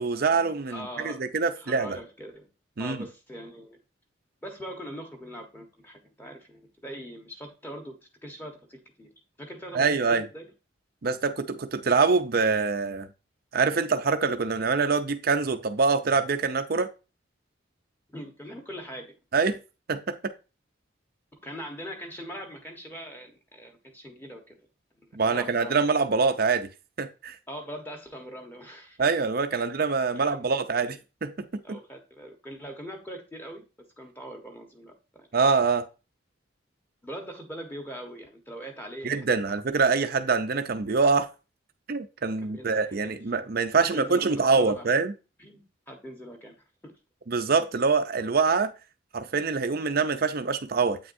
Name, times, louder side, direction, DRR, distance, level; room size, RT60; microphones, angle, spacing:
voice 1, 0.0-2.0 2.8-3.0 9.7-10.3 11.0-13.1 13.5-16.9 19.3-19.6 19.9-20.3 25.2-26.7 27.0-27.4 29.0-31.8 35.3-35.9 39.0-41.3 41.9-45.1 47.3-48.7 49.1-51.0, right 4 dB, 50° right, 0.6 m, -25 dB
voice 2, 0.7-1.2 1.6-2.5 2.8-3.8 4.4-8.0 8.2-9.1 9.4-10.5 18.1-19.1 21.4-24.7 25.3-25.8 27.5-29.0 29.6-29.7 30.1-30.5 30.8-31.0 31.6-35.3 37.0-39.5 42.4-43.1 43.8-44.9 45.4-46.5 46.8-46.9, equal, 10° left, 1.2 m, -42 dB
8.5 x 6.0 x 2.7 m
head